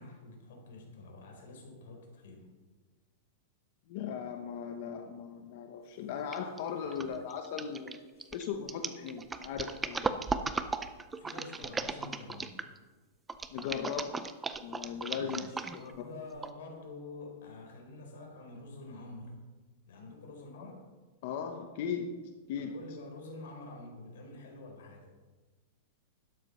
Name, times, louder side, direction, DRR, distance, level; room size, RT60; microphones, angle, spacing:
voice 1, 0.0-2.5 5.4-5.6 6.9-7.2 8.1-8.3 11.2-12.5 15.2-19.4 19.9-20.8 22.5-25.1, left 2 dB, 75° left, 2 dB, 4.3 m, -47 dB
voice 2, 3.9-8.0 8.3-10.1 13.5-14.2 14.6-15.4 15.7-15.9 20.6-20.7 21.2-22.2 22.5-22.7, left 7 dB, 50° left, 5 dB, 1.0 m, -38 dB
sound 1, 6.3-6.6 6.9-12.8 13.3-16.0 16.4-16.5, right 4 dB, 10° right, 0.5 m, -36 dB
12.5 x 9.8 x 5.6 m, 1.3 s
supercardioid pair, 170°, 0 cm